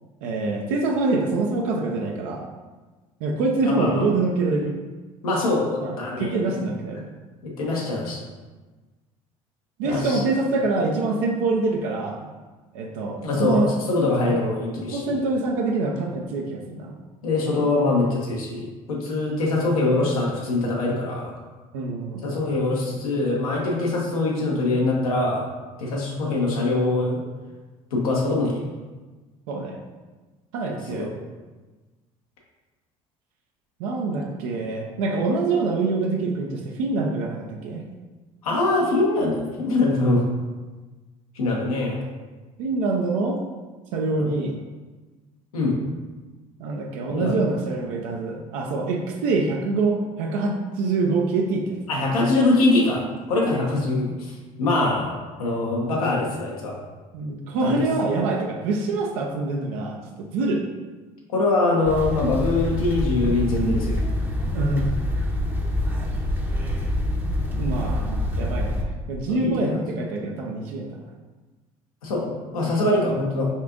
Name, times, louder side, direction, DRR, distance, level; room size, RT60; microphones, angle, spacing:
voice 1, 0.2-2.4 3.2-4.8 5.8-7.0 9.8-12.3 12.7-13.7 14.9-16.9 21.7-22.2 29.5-29.8 30.5-31.1 33.8-37.9 42.6-43.4 43.9-44.5 46.6-51.8 57.1-60.6 64.5-64.9 67.5-68.1 68.4-71.0, right 3 dB, 70° right, 1 dB, 0.5 m, -25 dB
voice 2, 3.7-4.1 5.2-6.6 7.4-8.2 9.8-10.2 13.2-15.1 17.2-21.3 22.2-25.5 25.8-27.2 27.9-28.6 30.9-31.1 38.4-40.2 41.3-42.0 44.2-44.3 45.5-45.8 47.1-47.3 51.9-56.8 57.6-57.8 61.3-64.0 69.3-69.8 72.0-73.5, left 2 dB, 85° left, -3 dB, 0.8 m, -23 dB
sound 1, 61.8-68.8, left 1 dB, 10° right, 0.6 m, -26 dB
5.3 x 2.5 x 2.5 m, 1.3 s
hypercardioid pair, 60°, 18 cm